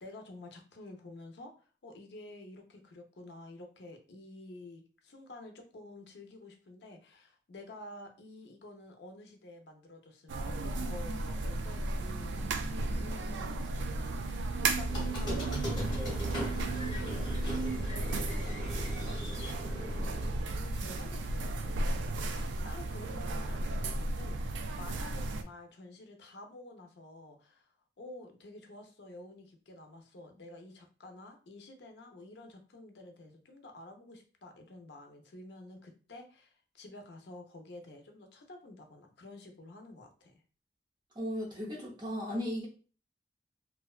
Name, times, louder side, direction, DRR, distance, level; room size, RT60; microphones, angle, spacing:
voice 1, 0.0-17.3 17.7-20.2 20.5-40.4, left 2 dB, 70° left, 4 dB, 0.5 m, -50 dB
sound 1, 10.3-25.4, right 2 dB, 90° right, 0.3 m, -34 dB
Squeak, 14.9-20.2, equal, 25° left, 0.8 m, -39 dB
voice 2, 41.2-42.7, equal, 25° right, -3 dB, 0.5 m, -36 dB
2.5 x 2.1 x 2.3 m, 0.37 s
head